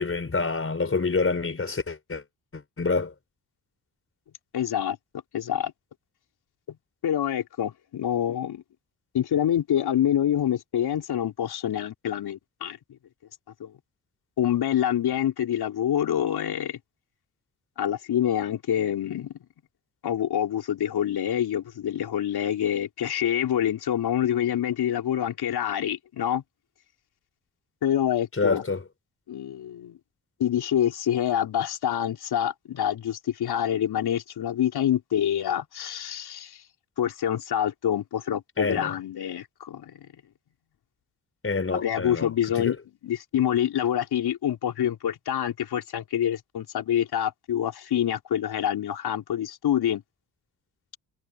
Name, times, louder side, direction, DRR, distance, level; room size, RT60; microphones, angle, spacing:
voice 1, 0.0-2.2 2.5-3.1 28.4-28.8 38.6-38.9 41.4-42.7, left 4 dB, 35° left, 4.4 m, -27 dB
voice 2, 4.5-5.0 5.3-5.7 6.7-6.8 7.0-8.6 9.1-12.8 13.6-13.7 14.4-16.8 17.8-19.3 20.0-26.4 27.8-28.6 29.3-30.0 30.4-36.6 37.0-40.1 41.7-42.8 43.0-50.0, left 10 dB, 70° left, 4.4 m, -26 dB
supercardioid pair, 50°, 40 cm